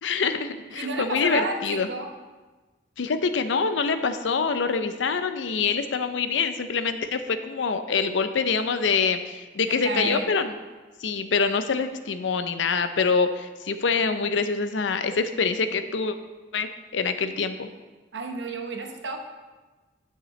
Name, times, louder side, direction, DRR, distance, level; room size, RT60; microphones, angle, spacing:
voice 1, 0.0-1.9 3.0-10.5 11.0-16.2 16.5-17.7, left 5 dB, 80° left, 9 dB, 0.5 m, -25 dB
voice 2, 0.7-2.1 9.7-10.3 18.1-19.2, right 3 dB, 75° right, 4 dB, 0.9 m, -31 dB
10.5 x 6.7 x 3.2 m, 1.2 s
head